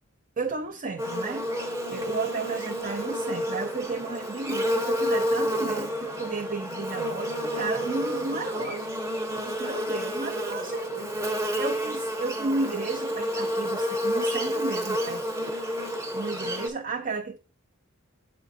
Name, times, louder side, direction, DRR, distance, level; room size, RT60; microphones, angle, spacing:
voice 1, 0.4-1.5 1.9-8.9 9.3-15.2 16.1-17.4, right 3 dB, 35° right, 0.5 m, -33 dB
Buzz, 1.0-16.7, equal, 15° right, 0.9 m, -30 dB
8.0 x 5.1 x 2.7 m
head